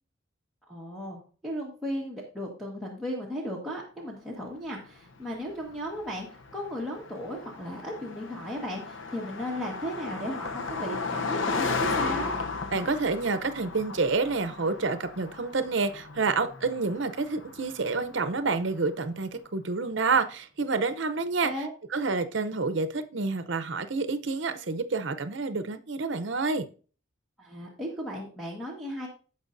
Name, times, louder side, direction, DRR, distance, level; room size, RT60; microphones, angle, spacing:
voice 1, 0.7-12.3 21.4-21.7 27.4-29.1, equal, ahead, 1.5 m, -36 dB
Car passing by, 5.1-18.8, left 4 dB, 70° left, 0.8 m, -35 dB
voice 2, 12.7-21.5 21.9-26.7, right 4 dB, 60° right, 0.7 m, -28 dB
16.5 x 5.5 x 2.6 m
head